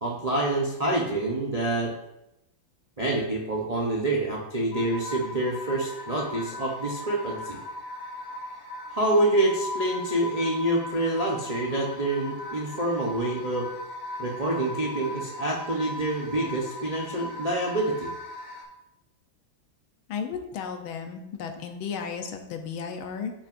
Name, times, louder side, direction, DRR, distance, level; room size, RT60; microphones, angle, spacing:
voice 1, 0.0-1.9 3.0-7.6 8.9-13.7 14.2-18.1, right 1 dB, 60° right, -3 dB, 0.4 m, -27 dB
sound 1, 4.7-18.6, left 1 dB, 40° left, 2.2 m, -38 dB
voice 2, 20.1-23.3, left 6 dB, 90° left, 5 dB, 1.6 m, -34 dB
9.6 x 5.9 x 2.6 m, 0.88 s
omnidirectional pair, 2.2 m